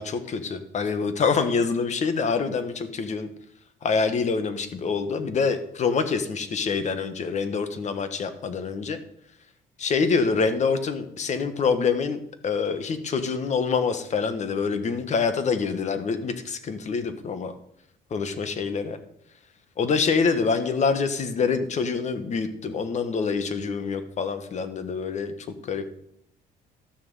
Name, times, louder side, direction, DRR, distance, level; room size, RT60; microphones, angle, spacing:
voice 1, 0.0-3.3 3.8-9.0 9.8-17.5 18.1-19.0 19.8-25.3 25.6-26.0, left 5 dB, 45° left, 10 dB, 1.4 m, -26 dB
13.0 x 6.7 x 5.6 m, 0.75 s
cardioid pair, 110°, 17 cm